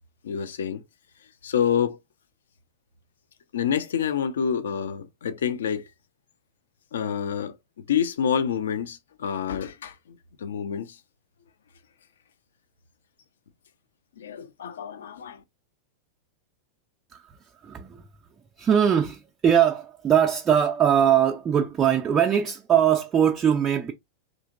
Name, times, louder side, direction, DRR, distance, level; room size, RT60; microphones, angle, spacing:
voice 1, 0.2-0.8 1.4-2.0 3.5-5.8 6.9-7.6 7.9-11.0 14.2-15.4, left 8 dB, 65° left, 0.4 m, -27 dB
voice 2, 17.1-18.1 18.6-23.9, right 9 dB, 25° right, 0.4 m, -21 dB
3.7 x 2.8 x 2.4 m
figure-of-eight pair, 90°, 0 cm